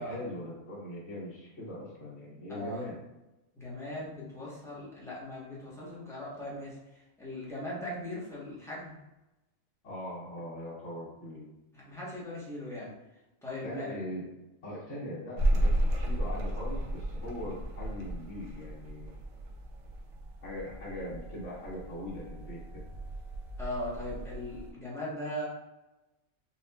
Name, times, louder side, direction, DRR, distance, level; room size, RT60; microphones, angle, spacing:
voice 1, 0.0-3.0 9.8-11.5 13.6-14.3 14.6-19.1 20.4-22.8, left 1 dB, 65° left, -11 dB, 1.5 m, -40 dB
voice 2, 2.5-2.9 3.6-6.8 7.2-8.9 11.7-12.9 13.4-13.9 23.6-25.5, left 1 dB, 5° left, -7 dB, 0.8 m, -39 dB
sound 1, 15.4-24.7, right 1 dB, 80° right, 0.9 m, -34 dB
4.0 x 2.5 x 2.3 m, 0.99 s
omnidirectional pair, 1.3 m